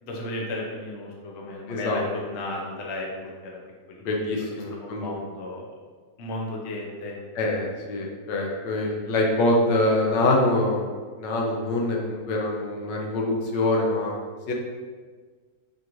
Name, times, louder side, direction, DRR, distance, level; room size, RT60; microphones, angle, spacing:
voice 1, 0.0-3.6 3.9-4.1 4.7-5.7 6.2-7.2, left 1 dB, 60° left, -1 dB, 0.7 m, -34 dB
voice 2, 1.7-2.0 4.0-5.1 7.4-10.9 11.2-14.2 14.5-14.6, left 2 dB, 90° left, 0 dB, 1.3 m, -24 dB
4.9 x 3.0 x 2.5 m, 1.5 s
omnidirectional pair, 1.9 m